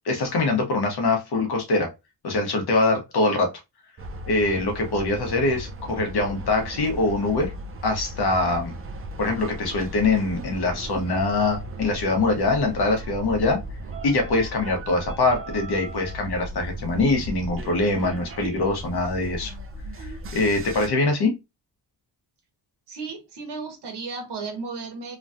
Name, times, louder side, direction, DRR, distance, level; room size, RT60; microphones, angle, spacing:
voice 1, 0.0-1.9 2.2-3.5 4.3-7.5 7.8-8.7 9.2-13.6 14.0-19.5 20.0-21.3, left 2 dB, 60° left, 1.2 m, -23 dB
sound 1, 4.0-20.9, right 1 dB, 30° right, 0.5 m, -37 dB
voice 2, 22.9-25.2, right 4 dB, 70° right, 1.2 m, -34 dB
3.1 x 2.3 x 2.6 m
cardioid pair, 90°, 43 cm